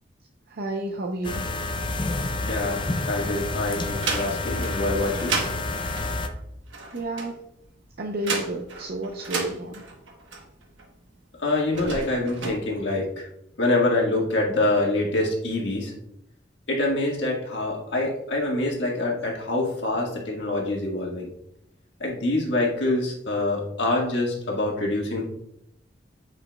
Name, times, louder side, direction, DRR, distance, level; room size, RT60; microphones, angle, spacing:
voice 1, 0.5-1.5 6.9-7.4 8.0-9.8, right 1 dB, 55° right, 1 dB, 0.6 m, -31 dB
sound 1, 1.2-6.3, left 2 dB, 25° left, 0.5 m, -29 dB
voice 2, 2.4-5.3 11.4-13.3 13.6-15.9 16.7-21.3 22.0-25.2, left 2 dB, 65° left, -2 dB, 1.6 m, -25 dB
sound 2, 3.9-10.9 11.6-12.5, right 4 dB, 85° right, 1.1 m, -33 dB
8.6 x 4.9 x 2.3 m, 0.78 s
head